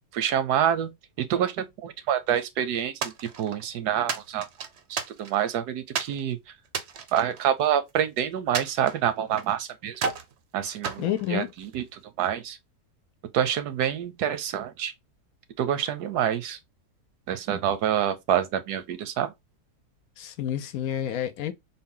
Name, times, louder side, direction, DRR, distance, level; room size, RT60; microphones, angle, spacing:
voice 1, 0.1-0.9 1.2-4.5 4.9-6.4 7.1-10.0 10.5-11.0 11.3-12.6 13.3-14.9 15.6-16.6 17.3-19.3, right 9 dB, 85° right, 1.2 m, -27 dB
sound 1, 3.0-3.7 4.1-5.5 5.9-6.2 6.7-8.0 8.5-9.6 9.9-10.3 10.8-11.9, right 6 dB, 60° right, 0.7 m, -33 dB
voice 2, 11.0-11.5 20.2-21.5, left 11 dB, 70° left, 0.9 m, -29 dB
3.9 x 2.2 x 3.7 m
omnidirectional pair, 1.7 m